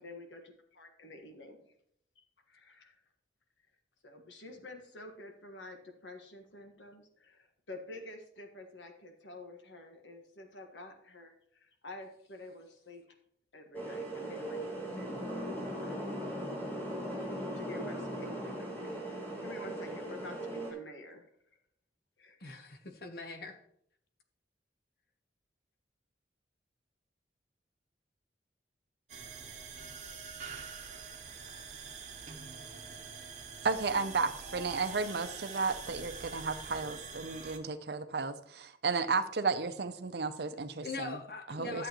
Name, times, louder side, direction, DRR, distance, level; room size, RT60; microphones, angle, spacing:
voice 1, 0.0-1.7 2.1-3.0 4.0-13.0 13.5-16.2 16.8-21.3 22.2-22.4, left 2 dB, 90° left, 4 dB, 1.5 m, -50 dB
sound 1, 13.7-20.7, right 1 dB, 10° left, 2.0 m, -38 dB
voice 2, 22.4-23.6 40.8-41.9, left 4 dB, 55° left, 6 dB, 0.9 m, -42 dB
sound 2, 29.1-37.6, right 5 dB, 40° right, 0.9 m, -45 dB
voice 3, 33.6-41.2 41.5-41.9, right 4 dB, 65° right, 11 dB, 0.6 m, -33 dB
11.5 x 7.8 x 3.0 m, 0.69 s
head